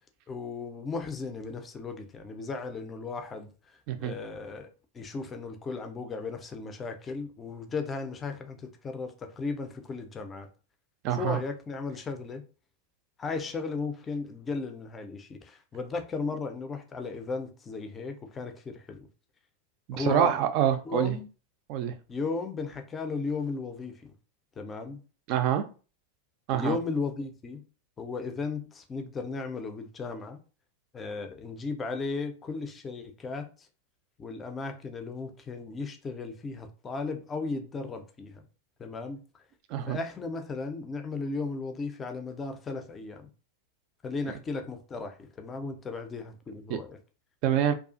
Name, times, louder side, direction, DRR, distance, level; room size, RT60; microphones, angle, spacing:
voice 1, 0.3-10.5 11.1-12.4 13.2-19.1 19.9-20.4 20.8-21.3 22.1-24.1 24.6-25.0 26.5-27.6 28.0-30.4 30.9-33.7 34.2-38.4 38.8-39.2 39.9-43.3 44.0-47.0, left 4 dB, 20° left, 0.4 m, -35 dB
voice 2, 11.0-11.4 19.9-21.2 21.7-21.9 25.3-25.6 26.5-26.8 39.7-40.0 46.7-46.8 47.4-47.7, right 10 dB, 40° right, 0.4 m, -26 dB
2.4 x 2.3 x 2.5 m
figure-of-eight pair, 90°, 0 cm